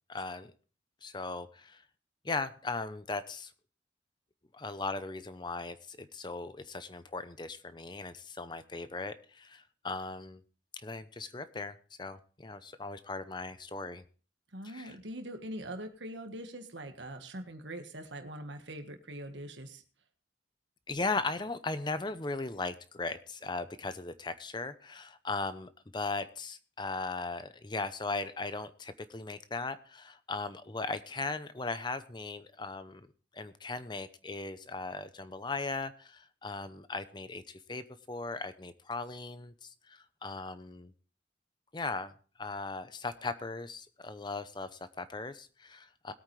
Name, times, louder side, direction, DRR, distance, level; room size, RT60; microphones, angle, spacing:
voice 1, 0.1-0.5 1.0-1.8 2.2-3.5 4.5-10.4 10.7-14.0 14.6-14.9 20.9-33.1 33.3-40.9 41.7-42.1 42.4-46.1, left 3 dB, 25° left, 12 dB, 0.7 m, -38 dB
voice 2, 14.5-19.8, right 1 dB, 85° right, 6 dB, 1.5 m, -42 dB
21.0 x 8.8 x 3.2 m, 0.38 s
head